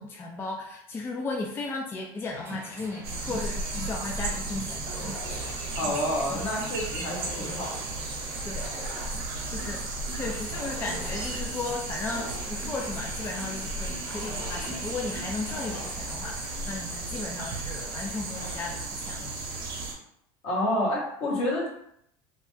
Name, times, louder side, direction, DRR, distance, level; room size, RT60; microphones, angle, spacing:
voice 1, 0.0-5.0 8.4-8.7 9.5-19.3, left 3 dB, 20° left, 0 dB, 0.3 m, -35 dB
sound 1, 2.3-15.7, right 2 dB, 20° right, 0.7 m, -44 dB
sound 2, 3.0-19.9, right 2 dB, 80° right, 0.8 m, -35 dB
sound 3, 4.9-18.6, left 2 dB, 80° left, 1.4 m, -45 dB
voice 2, 5.8-7.8 20.4-21.7, left 1 dB, 60° left, -3 dB, 1.3 m, -28 dB
2.9 x 2.1 x 3.1 m, 0.72 s
supercardioid pair, 120°, 12 cm